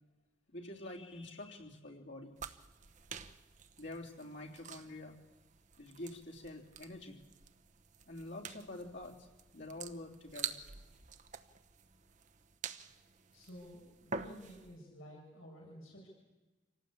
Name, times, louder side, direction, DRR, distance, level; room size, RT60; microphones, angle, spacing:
voice 1, 0.5-2.4 3.8-5.2 5.8-7.2 8.1-9.3 9.5-10.6, left 2 dB, 55° left, -1 dB, 3.3 m, -47 dB
sound 1, 2.4-14.8, right 6 dB, 35° right, 0.9 m, -48 dB
voice 2, 13.3-16.1, equal, 85° left, -1 dB, 6.6 m, -52 dB
26.5 x 18.0 x 8.8 m, 1.2 s
head